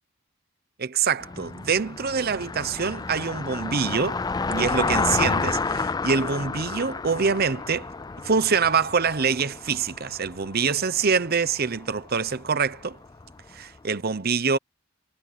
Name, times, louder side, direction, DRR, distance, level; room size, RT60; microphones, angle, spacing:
voice 1, 0.8-4.2 4.5-7.9 8.2-13.0 13.5-14.6, right 5 dB, 50° right, 0.8 m, -25 dB
Car passing by, 1.2-13.5, left 4 dB, 20° left, 0.4 m, -31 dB
head